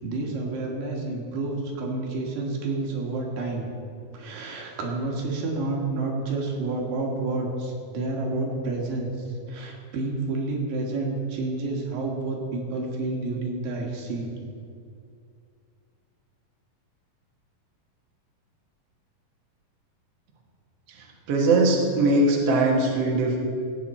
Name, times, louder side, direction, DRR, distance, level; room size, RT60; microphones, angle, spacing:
voice 1, 0.0-3.7 4.1-14.3, right 3 dB, 75° right, 0 dB, 3.2 m, -29 dB
voice 2, 20.9-23.4, right 2 dB, 55° right, -1 dB, 2.0 m, -21 dB
17.0 x 8.6 x 4.3 m, 2.4 s
omnidirectional pair, 4.0 m